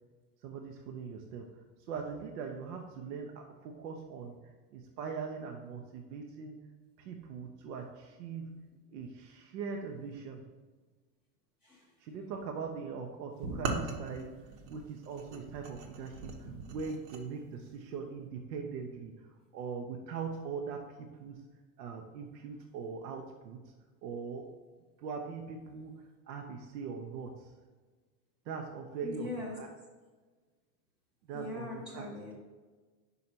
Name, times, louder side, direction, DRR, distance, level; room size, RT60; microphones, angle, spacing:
voice 1, 0.4-6.6 7.0-8.5 8.9-10.5 12.0-21.4 21.8-23.7 24.0-24.5 25.0-27.5 28.5-29.7 31.2-32.1, right 5 dB, 85° right, 3 dB, 0.8 m, -41 dB
sound 1, 13.4-17.2, right 3 dB, 65° right, 1.1 m, -39 dB
voice 2, 29.0-29.6 31.3-32.3, left 3 dB, ahead, -8 dB, 0.4 m, -41 dB
5.5 x 4.9 x 4.4 m, 1.4 s
supercardioid pair, 145°, 48 cm